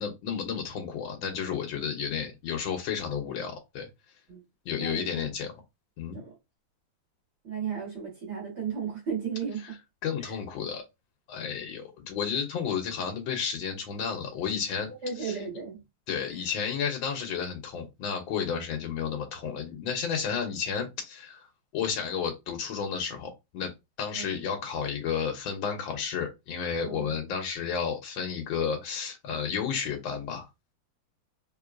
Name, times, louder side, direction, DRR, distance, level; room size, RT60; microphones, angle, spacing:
voice 1, 0.0-3.9 4.6-5.5 6.0-6.2 10.0-10.8 11.3-14.9 15.2-15.3 16.1-21.5 21.7-23.7 24.0-30.5, left 7 dB, 80° left, 1.5 m, -32 dB
voice 2, 4.8-5.3 6.1-6.3 7.4-9.8 10.2-10.4 15.0-15.8 16.3-16.5 24.1-24.4 26.8-27.2, right 6 dB, 65° right, 2.0 m, -35 dB
3.7 x 3.2 x 2.4 m
omnidirectional pair, 2.1 m